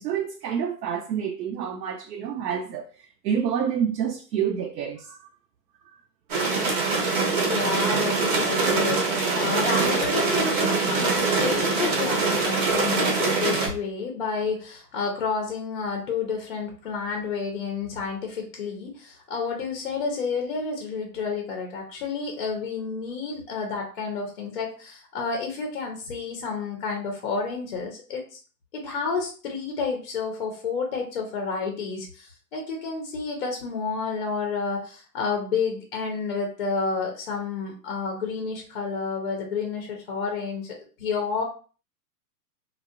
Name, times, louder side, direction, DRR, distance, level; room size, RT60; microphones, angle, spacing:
voice 1, 0.0-5.3, right 8 dB, 80° right, 0.5 m, -28 dB
sound 1, 6.3-13.7, right 3 dB, 30° right, 0.6 m, -23 dB
voice 2, 7.5-28.2 28.7-40.7 41.0-41.4, left 4 dB, 40° left, 0.4 m, -30 dB
2.6 x 2.0 x 2.4 m
hypercardioid pair, 145°, 49 cm